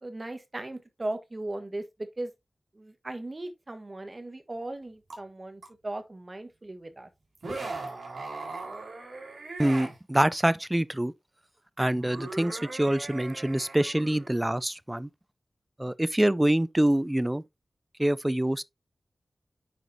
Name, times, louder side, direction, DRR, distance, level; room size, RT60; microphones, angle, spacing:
voice 1, 0.0-2.3 2.7-7.1, right 2 dB, 35° right, 1.4 m, -37 dB
sound 1, 5.1-5.2 5.6-5.7 7.4-10.0 11.9-14.5, right 3 dB, 85° right, 3.7 m, -39 dB
voice 2, 9.6-11.1 11.8-15.1 15.8-17.4 18.0-18.6, right 1 dB, 15° right, 0.4 m, -25 dB
9.3 x 4.8 x 2.7 m
wide cardioid pair, 85°, 0 cm